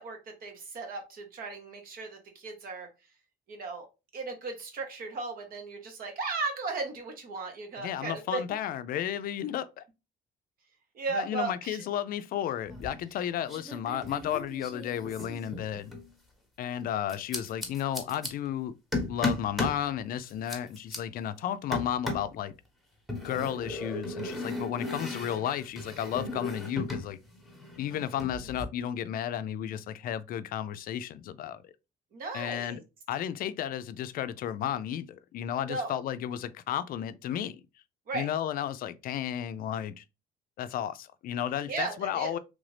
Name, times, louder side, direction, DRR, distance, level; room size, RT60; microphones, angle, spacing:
voice 1, 0.0-2.9 3.5-3.9 4.1-8.4 10.9-11.8 32.1-32.8 35.7-36.0 38.1-38.3 41.7-42.4, right 3 dB, 60° right, 1.1 m, -36 dB
voice 2, 7.8-9.8 11.1-15.9 16.6-18.7 19.1-22.5 23.2-27.2 27.8-31.7 32.3-32.8 33.1-37.6 38.1-40.0 40.6-42.4, left 10 dB, 60° left, 0.4 m, -33 dB
sound 1, 12.7-13.2 13.5-16.1 17.1-18.3 18.9-19.8 20.2-21.0 21.7-22.3 23.1-27.1 27.3-28.6, left 2 dB, ahead, 1.1 m, -36 dB
3.2 x 2.6 x 3.2 m
cardioid pair, 110°, 17 cm